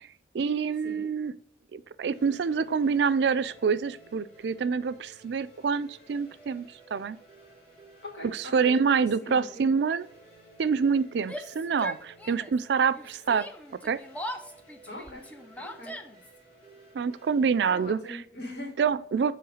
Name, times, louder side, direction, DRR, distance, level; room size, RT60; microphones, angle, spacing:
voice 1, 0.3-1.3 1.7-7.2 8.2-10.0 10.6-13.5 13.8-14.0 16.9-18.0 18.8-19.3, right 6 dB, 75° right, 15 dB, 0.4 m, -26 dB
sound 1, 2.1-17.9, right 2 dB, 35° left, 2.7 m, -55 dB
voice 2, 8.0-9.8 14.9-15.2 15.6-16.0 17.6-18.9, left 1 dB, 80° left, -1 dB, 2.1 m, -41 dB
Yell, 11.2-12.6 12.9-16.4, equal, 10° left, 0.4 m, -40 dB
7.8 x 3.1 x 4.9 m, 0.66 s
head